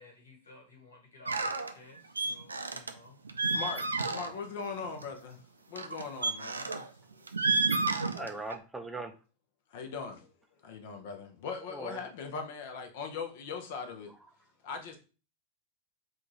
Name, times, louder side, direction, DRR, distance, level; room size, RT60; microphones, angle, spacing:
voice 1, 0.0-3.2, left 3 dB, 70° left, 1.7 m, -55 dB
sound 1, 1.3-1.7 2.2-2.9 3.2-4.5 4.8-5.0 5.8-6.9 7.3-8.6, right 3 dB, 75° right, 0.4 m, -31 dB
voice 2, 3.5-5.4 5.7-6.7 7.1-7.2 9.7-10.3 10.6-14.1 14.6-15.0, left 5 dB, 50° left, 0.8 m, -40 dB
voice 3, 8.1-9.1 11.7-12.0, right 2 dB, 10° right, 0.6 m, -39 dB
3.7 x 2.5 x 4.6 m
figure-of-eight pair, 90°, 0 cm